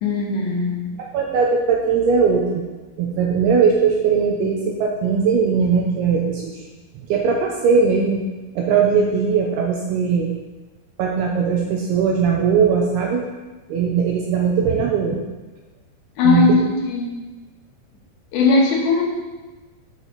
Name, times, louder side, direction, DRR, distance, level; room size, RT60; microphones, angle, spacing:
voice 1, 0.0-1.0 16.2-17.1 18.3-19.0, left 4 dB, 75° left, -2 dB, 3.4 m, -18 dB
voice 2, 1.0-2.6 3.0-6.6 7.1-8.2 8.6-10.3 11.0-13.3 13.7-15.2 16.2-16.6, right 6 dB, 80° right, 0 dB, 2.4 m, -19 dB
10.5 x 6.3 x 4.0 m, 1.2 s
omnidirectional pair, 5.3 m